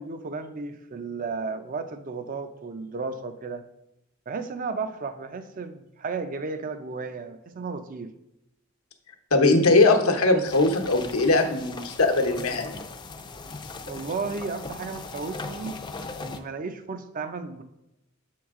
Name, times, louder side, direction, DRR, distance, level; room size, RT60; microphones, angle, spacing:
voice 1, 0.0-3.6 4.3-8.1 13.9-15.8 16.2-17.6, right 4 dB, 40° right, 10 dB, 0.4 m, -34 dB
voice 2, 9.3-12.8, left 2 dB, 90° left, 4 dB, 0.9 m, -20 dB
sound 1, 10.5-16.4, left 3 dB, 20° left, 0.4 m, -39 dB
7.1 x 4.6 x 3.6 m, 0.88 s
head